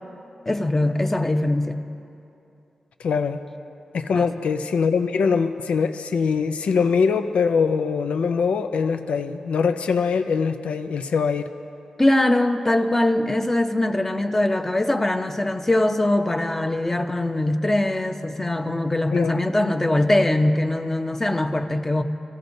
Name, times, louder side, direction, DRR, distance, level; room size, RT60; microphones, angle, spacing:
voice 1, 0.5-1.8 4.1-4.3 12.0-22.0, left 1 dB, 20° left, 5 dB, 0.8 m, -22 dB
voice 2, 3.0-3.4 3.9-11.5 19.1-19.4, left 5 dB, 85° left, 8 dB, 0.5 m, -22 dB
25.5 x 15.5 x 2.7 m, 2.7 s
wide cardioid pair, 95°, 2 cm